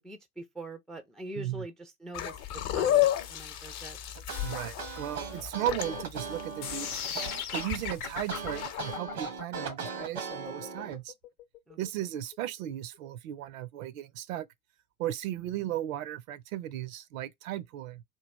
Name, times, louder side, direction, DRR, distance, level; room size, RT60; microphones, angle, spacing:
voice 1, 0.0-4.0 11.7-11.8, right 1 dB, ahead, 0.3 m, -43 dB
voice 2, 1.4-1.7 4.4-7.0 7.5-11.1 11.8-14.5 15.0-18.0, right 12 dB, 65° right, 0.5 m, -36 dB
sound 1, 2.1-8.9, left 12 dB, 50° left, 0.8 m, -32 dB
sound 2, 4.2-11.0, right 5 dB, 90° right, 1.1 m, -39 dB
sound 3, 6.6-12.7, left 8 dB, 80° left, 0.7 m, -38 dB
3.2 x 2.2 x 3.2 m
hypercardioid pair, 75°, 43 cm